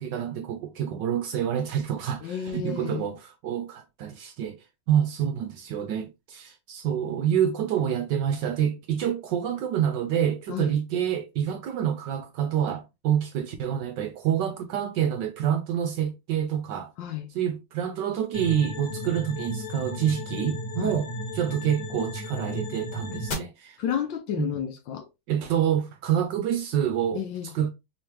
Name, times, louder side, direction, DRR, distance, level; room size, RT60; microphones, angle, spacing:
voice 1, 0.0-4.6 4.9-16.9 17.3-23.8 24.3-24.5 25.3-27.2 27.5-27.7, right 9 dB, 75° right, 1.1 m, -27 dB
voice 2, 2.2-3.1 10.5-10.8 17.0-17.3 20.8-20.9 23.8-25.1 27.1-27.6, left 9 dB, 70° left, 1.2 m, -31 dB
sound 1, 18.3-23.3, left 1 dB, 50° left, 1.7 m, -34 dB
3.6 x 3.2 x 2.9 m
omnidirectional pair, 2.3 m